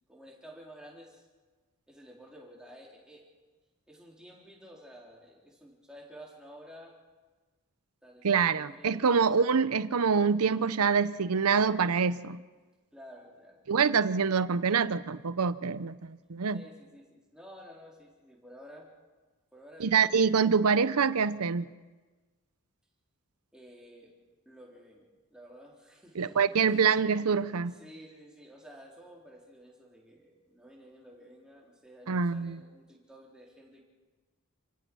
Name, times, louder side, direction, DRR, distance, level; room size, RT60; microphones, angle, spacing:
voice 1, 0.1-1.3 1.9-3.2 3.9-6.9 8.0-9.2 12.9-13.6 16.5-18.9 19.5-20.1 23.5-24.1 24.5-33.8, equal, 5° right, -2 dB, 4.0 m, -52 dB
voice 2, 8.2-12.4 13.7-16.6 19.8-21.7 26.2-27.7 32.1-32.6, right 5 dB, 90° right, 15 dB, 0.7 m, -26 dB
29.0 x 17.5 x 6.3 m, 1.3 s
head